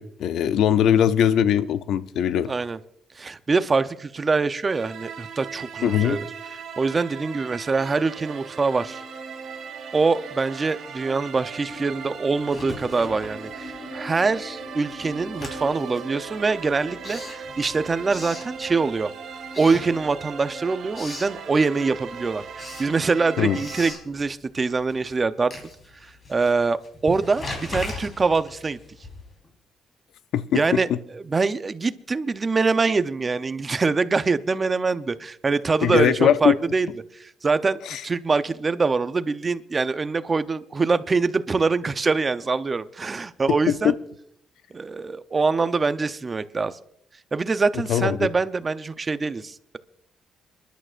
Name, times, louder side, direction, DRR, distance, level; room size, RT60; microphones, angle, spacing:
voice 1, 0.0-2.5 5.8-6.2 23.4-23.6 30.3-30.6 35.8-36.6 37.9-38.0 43.7-43.9 47.9-48.3, left 9 dB, 80° left, 13 dB, 0.6 m, -20 dB
voice 2, 2.5-2.8 3.2-6.3 6.8-9.0 9.9-19.1 19.6-25.5 26.0-28.8 30.5-30.9 31.1-36.9 37.1-43.9 44.7-46.7 47.3-49.8, right 4 dB, 30° right, 12 dB, 0.7 m, -24 dB
sound 1, 4.7-23.9, right 6 dB, 70° right, 1.7 m, -38 dB
sound 2, 11.6-21.0, left 3 dB, 60° left, 1.5 m, -45 dB
Writing, 12.4-14.0 14.3-19.1 19.5-20.4 20.7-21.4 21.8-29.5, left 2 dB, 40° left, 4.0 m, -39 dB
28.5 x 11.5 x 2.5 m, 0.73 s
cardioid pair, 90°, 0 cm